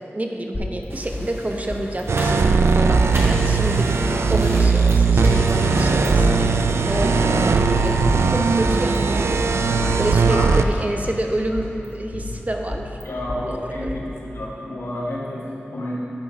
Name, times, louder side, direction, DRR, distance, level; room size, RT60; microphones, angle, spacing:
voice 1, 0.1-3.9 4.3-8.0 8.3-9.5 10.0-13.0 13.5-14.0, right 1 dB, 35° right, 3 dB, 0.9 m, -28 dB
sound 1, 0.5-2.0 2.3-2.4 2.9-4.1 4.6-4.9 5.2-7.0 7.5-9.0 9.2-9.3 9.8-11.2 11.5-13.4 13.9-14.0, left 1 dB, 55° left, 2.0 m, -32 dB
sound 2, 0.9-6.1, right 1 dB, 60° right, 1.5 m, -36 dB
sound 3, 2.1-10.6, right 4 dB, 85° right, 0.3 m, -18 dB
voice 2, 6.8-7.1 10.3-10.5 13.0-15.9, left 1 dB, 80° left, -7 dB, 2.0 m, -30 dB
10.0 x 5.3 x 4.8 m, 3.0 s
cardioid pair, 45°, 4 cm